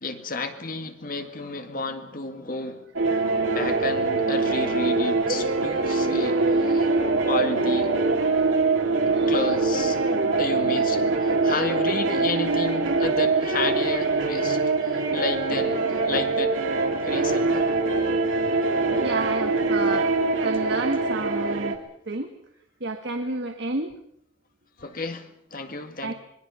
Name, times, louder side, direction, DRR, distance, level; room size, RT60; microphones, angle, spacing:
voice 1, 0.0-2.9 3.5-6.9 7.2-7.9 9.1-10.0 10.4-16.6 17.0-17.6 24.8-26.1, left 3 dB, 45° left, 7 dB, 1.9 m, -32 dB
sound 1, 3.0-21.8, right 3 dB, 75° right, 3.2 m, -23 dB
voice 2, 19.0-20.1 20.4-21.8 22.1-22.3 22.8-23.9 26.0-26.1, right 2 dB, 55° right, 5 dB, 1.6 m, -30 dB
26.0 x 22.0 x 5.7 m, 0.73 s
head